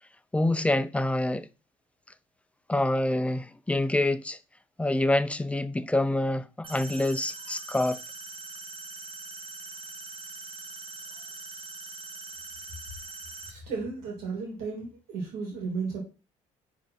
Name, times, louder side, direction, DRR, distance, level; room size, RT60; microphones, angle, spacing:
voice 1, 0.3-1.5 2.7-4.4 4.8-8.0, left 1 dB, 10° left, 0.6 m, -26 dB
sound 1, 6.6-13.5, right 4 dB, 35° right, 1.9 m, -42 dB
voice 2, 13.4-16.0, right 4 dB, 80° right, 3.1 m, -34 dB
4.9 x 4.7 x 5.7 m
supercardioid pair, 70°, 16 cm